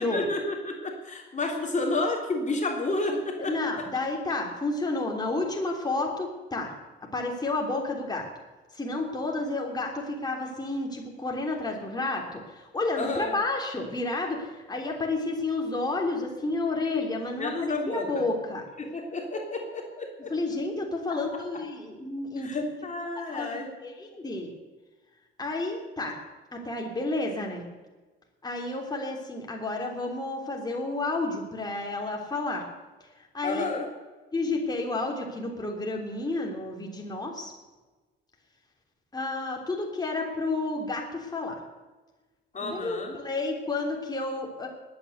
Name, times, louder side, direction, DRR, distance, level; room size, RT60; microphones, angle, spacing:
voice 1, 0.0-3.8 13.0-13.3 17.4-18.1 18.8-20.3 22.4-23.7 33.4-33.9 42.5-43.2, left 2 dB, 40° left, 1 dB, 3.2 m, -31 dB
voice 2, 3.1-6.7 7.1-8.3 8.7-18.6 20.3-22.7 23.3-24.5 25.4-26.2 26.5-27.6 28.4-32.6 33.2-33.7 34.3-37.5 39.1-41.6 42.6-44.7, left 2 dB, 20° left, 0 dB, 3.3 m, -31 dB
19.5 x 8.7 x 8.1 m, 1.3 s
cardioid pair, 90°, 20 cm